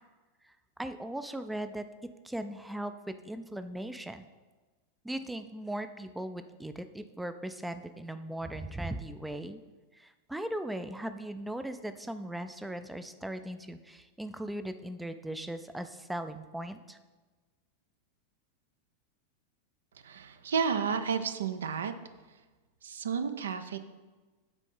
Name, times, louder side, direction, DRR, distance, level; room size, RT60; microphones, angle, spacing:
voice 1, 0.8-4.2 5.0-9.6 9.9-17.0, right 1 dB, 5° right, 9 dB, 0.4 m, -38 dB
voice 2, 20.0-21.9 22.8-23.8, right 6 dB, 65° right, 10 dB, 0.5 m, -31 dB
8.0 x 4.2 x 5.6 m, 1.3 s
figure-of-eight pair, 90°, 0 cm